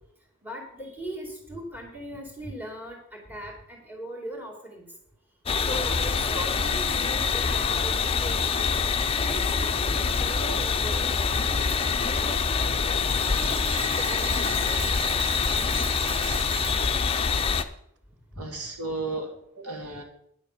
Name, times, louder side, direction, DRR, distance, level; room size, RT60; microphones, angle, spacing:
voice 1, 0.4-4.9 5.6-8.7 9.2-11.1 11.4-12.4 12.9-13.0 13.3-15.0 18.3-18.4, right 1 dB, 10° right, 1 dB, 2.5 m, -39 dB
sound 1, 5.5-17.6, left 5 dB, 25° left, 0.6 m, -25 dB
sound 2, 13.1-17.4, right 10 dB, 55° right, 0.6 m, -38 dB
voice 2, 18.4-20.0, right 3 dB, 90° right, 3 dB, 2.3 m, -34 dB
10.5 x 7.0 x 6.7 m, 0.71 s
head